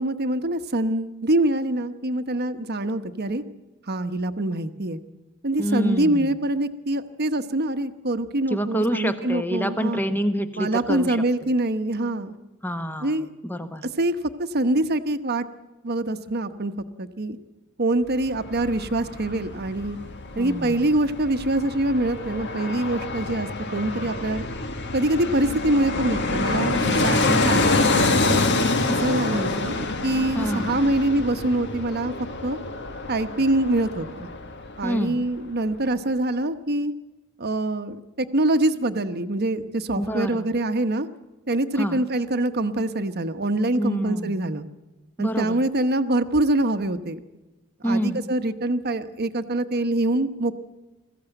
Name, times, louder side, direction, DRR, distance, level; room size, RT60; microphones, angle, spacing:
voice 1, 0.0-3.4 3.9-5.0 5.4-10.0 10.6-12.3 13.0-13.3 14.0-14.1 14.4-15.4 15.8-16.7 17.0-17.4 17.8-20.0 20.4-24.4 24.9-28.4 28.9-32.1 32.4-32.6 33.1-34.3 34.8-36.9 37.4-41.1 41.5-44.7 45.2-47.2 47.8-50.6, right 1 dB, 45° right, 10 dB, 1.0 m, -24 dB
voice 2, 5.6-6.4 8.5-11.2 12.6-13.9 20.3-20.9 29.2-29.6 30.3-30.7 34.8-35.2 40.0-40.5 41.8-42.0 43.8-44.4 45.2-45.6 47.8-48.2, equal, 10° left, 9 dB, 1.2 m, -27 dB
Fixed-wing aircraft airplane, 18.1-35.0 35.3-35.4, left 3 dB, 55° left, 1.6 m, -26 dB
21.5 x 15.0 x 9.1 m, 1.1 s
head